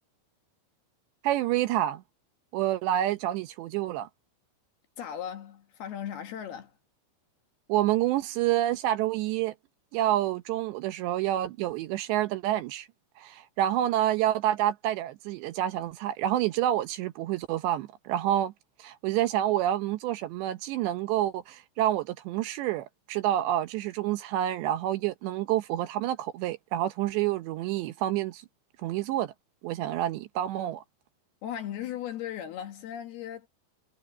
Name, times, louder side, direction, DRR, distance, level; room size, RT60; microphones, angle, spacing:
voice 1, 1.2-2.0 2.5-4.1 7.7-9.5 9.9-12.9 13.2-18.5 18.8-28.4 28.8-29.3 29.6-30.8, right 13 dB, 75° right, 2.8 m, -28 dB
voice 2, 5.0-6.7 31.4-33.5, left 10 dB, 65° left, 3.0 m, -37 dB
omnidirectional pair, 5.6 m